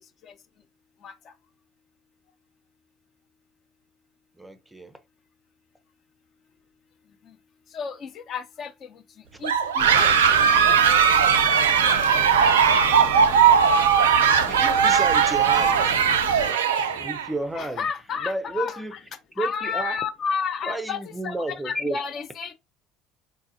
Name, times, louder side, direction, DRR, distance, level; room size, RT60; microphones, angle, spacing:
voice 1, 1.0-1.3 7.2-7.3 7.7-9.0 9.4-11.3 17.5-19.0 19.4-22.5, left 6 dB, 45° left, 0.7 m, -32 dB
voice 2, 4.4-5.0 14.4-16.0 16.8-17.9 18.2-18.9 19.4-20.0 20.6-22.1, right 2 dB, 10° right, 0.6 m, -32 dB
sound 1, 9.4-17.3, right 7 dB, 70° right, 0.3 m, -19 dB
sound 2, 9.8-16.5, left 2 dB, 75° left, 0.8 m, -36 dB
3.8 x 2.4 x 2.7 m
figure-of-eight pair, 65°, 0 cm